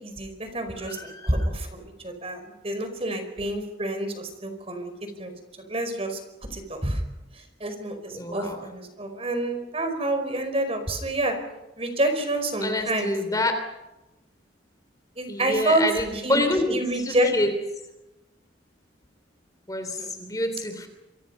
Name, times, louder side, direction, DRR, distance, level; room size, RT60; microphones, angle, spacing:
voice 1, 0.0-4.9 5.2-5.3 5.7-6.2 6.5-7.0 7.6-11.4 11.8-13.1 15.2-15.8 16.2-17.3 20.0-20.1, right 1 dB, 30° right, 7 dB, 5.0 m, -28 dB
voice 2, 0.9-1.5 8.1-8.6 12.6-13.6 15.3-16.8 17.0-17.5 19.7-20.9, left 1 dB, 20° left, 7 dB, 3.3 m, -27 dB
28.0 x 25.0 x 5.6 m, 0.97 s
head